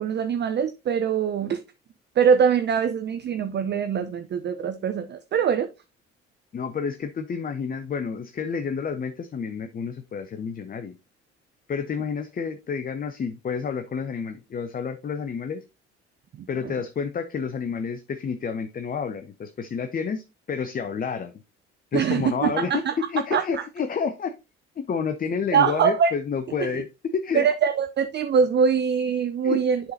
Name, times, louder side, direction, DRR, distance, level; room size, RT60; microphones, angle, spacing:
voice 1, 0.0-1.6 2.2-5.7 16.3-16.7 21.9-23.0 23.3-23.6 25.5-26.1 27.3-29.9, right 7 dB, 35° right, 0.5 m, -23 dB
voice 2, 6.5-11.0 11.7-15.6 16.5-20.2 20.5-21.3 21.9-22.8 23.1-24.3 24.8-26.9 27.1-27.5 29.4-29.6, left 6 dB, 25° left, 0.6 m, -29 dB
10.5 x 3.8 x 2.7 m
figure-of-eight pair, 50°, 33 cm